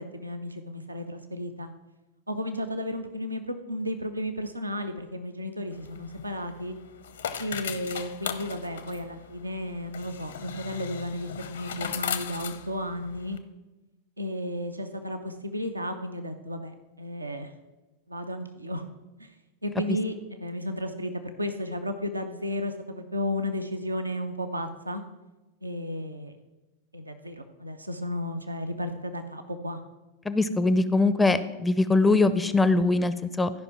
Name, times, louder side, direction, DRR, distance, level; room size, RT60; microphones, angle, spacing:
voice 1, 0.0-1.7 2.3-6.8 7.4-13.4 14.2-17.5 18.1-18.8 19.2-19.3 19.6-25.0 25.6-26.3 26.9-29.8, left 1 dB, 85° right, 7 dB, 0.7 m, -33 dB
sound 1, 5.7-13.4, left 8 dB, 65° left, 0.7 m, -38 dB
voice 2, 30.3-33.5, left 3 dB, 10° left, 13 dB, 0.5 m, -22 dB
13.0 x 5.4 x 5.8 m, 1.1 s
figure-of-eight pair, 90°, 0 cm